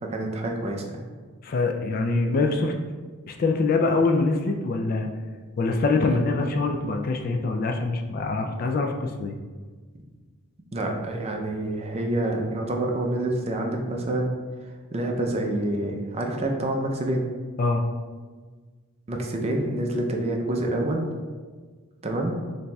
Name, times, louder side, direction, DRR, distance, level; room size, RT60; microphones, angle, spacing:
voice 1, 0.0-1.0 6.1-6.2 10.7-14.3 14.9-17.3 19.1-21.0 22.0-22.3, right 1 dB, 30° right, 1 dB, 0.5 m, -27 dB
voice 2, 1.4-2.7 3.3-5.1 5.6-9.3 17.6-17.8, left 3 dB, 45° left, 4 dB, 0.3 m, -24 dB
7.0 x 2.7 x 2.3 m, 1.4 s
head